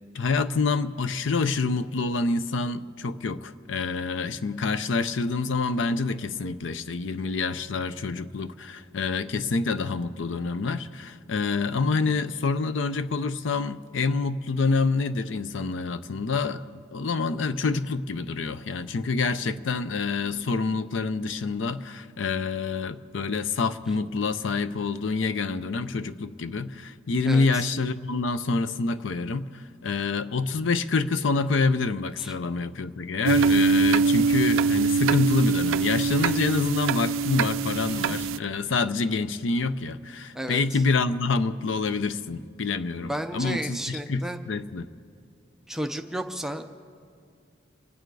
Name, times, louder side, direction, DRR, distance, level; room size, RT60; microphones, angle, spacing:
voice 1, 0.1-44.9, left 4 dB, 70° left, 0.5 m, -27 dB
voice 2, 27.3-27.7 32.2-32.3 37.9-38.3 40.3-40.8 43.0-44.4 45.7-46.7, right 1 dB, ahead, 0.5 m, -33 dB
sound 1, 33.3-38.4, right 4 dB, 80° right, 0.3 m, -23 dB
25.5 x 9.1 x 4.7 m
head